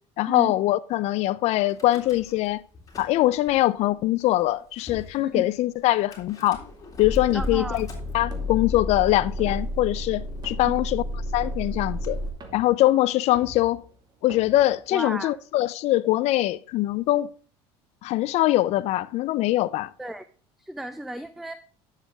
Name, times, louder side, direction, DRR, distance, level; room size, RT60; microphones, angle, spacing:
voice 1, 0.2-2.6 3.0-6.6 7.0-7.9 8.1-11.0 11.3-12.2 12.5-13.8 14.2-17.3 18.0-19.9, left 16 dB, 60° left, 0.6 m, -23 dB
Car / Engine starting / Idling, 1.7-2.5 2.7-3.5 4.2-4.3 4.5-4.6 4.9-5.1 6.1-12.3, left 1 dB, 30° left, 3.4 m, -32 dB
sound 1, 4.8-15.4, right 2 dB, 35° right, 2.3 m, -48 dB
voice 2, 7.3-7.8 10.6-10.7 14.9-15.3 20.0-20.2 20.6-21.6, right 1 dB, ahead, 0.6 m, -33 dB
9.9 x 7.3 x 3.6 m
supercardioid pair, 95°, 13 cm